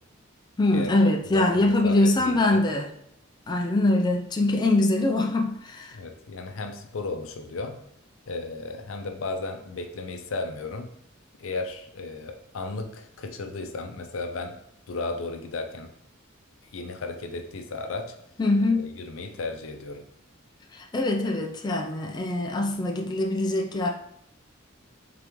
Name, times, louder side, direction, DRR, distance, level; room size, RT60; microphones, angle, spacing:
voice 1, 0.6-2.9 3.5-6.0 18.4-18.9 20.7-23.9, left 2 dB, 20° left, 1 dB, 0.3 m, -23 dB
voice 2, 1.2-2.6 5.9-7.8 8.3-10.9 11.4-14.6 14.9-15.9 16.7-18.1 18.8-20.0, left 3 dB, 80° left, 6 dB, 0.5 m, -34 dB
3.8 x 3.5 x 3.0 m, 0.74 s
head